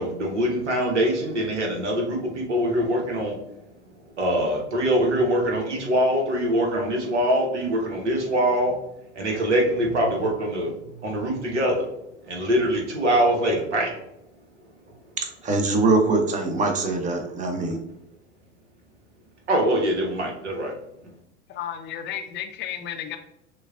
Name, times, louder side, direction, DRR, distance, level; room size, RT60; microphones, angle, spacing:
voice 1, 0.0-3.3 4.2-8.8 9.1-10.7 11.0-11.9 12.2-14.0 19.5-20.7, equal, 80° right, 1 dB, 1.1 m, -23 dB
voice 2, 15.2-17.8, right 3 dB, 20° right, 4 dB, 0.7 m, -23 dB
voice 3, 21.5-23.2, left 10 dB, 30° left, 6 dB, 0.5 m, -33 dB
6.2 x 2.3 x 2.4 m, 0.81 s
figure-of-eight pair, 80°, 35 cm